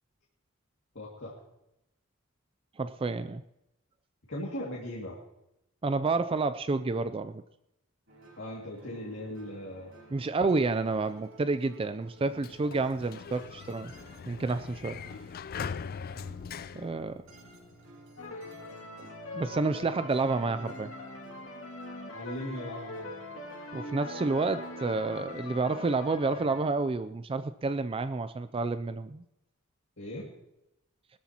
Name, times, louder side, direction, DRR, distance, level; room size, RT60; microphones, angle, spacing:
voice 1, 0.9-1.3 4.3-5.2 8.4-9.9 22.1-23.1 30.0-30.3, left 1 dB, 60° left, -3 dB, 2.3 m, -38 dB
voice 2, 2.8-3.4 5.8-7.4 10.1-13.9 14.3-15.0 16.7-17.2 19.3-20.9 23.7-29.2, right 3 dB, 25° right, 11 dB, 0.4 m, -29 dB
sound 1, 8.1-25.2, right 2 dB, 70° right, 4.7 m, -54 dB
Sliding door, 12.1-17.8, left 6 dB, 45° left, 0.4 m, -41 dB
sound 2, 18.2-26.7, left 2 dB, 80° left, 2.4 m, -42 dB
20.5 x 13.0 x 2.9 m, 0.86 s
head